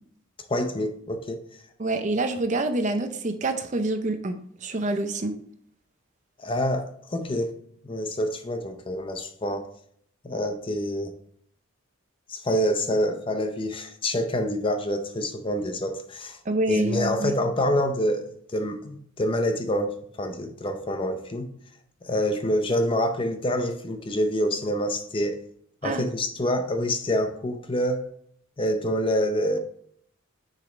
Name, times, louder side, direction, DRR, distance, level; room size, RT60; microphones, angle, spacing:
voice 1, 0.5-1.4 6.4-7.5 7.8-9.7 10.2-11.1 12.3-16.4 16.7-18.2 18.5-21.5 22.0-25.4 25.8-28.0 28.6-29.6, equal, 25° left, 7 dB, 0.5 m, -26 dB
voice 2, 1.8-4.4 4.6-5.3 16.5-17.3 25.8-26.0, right 2 dB, 35° right, 8 dB, 0.5 m, -26 dB
6.3 x 5.0 x 3.9 m, 0.65 s
head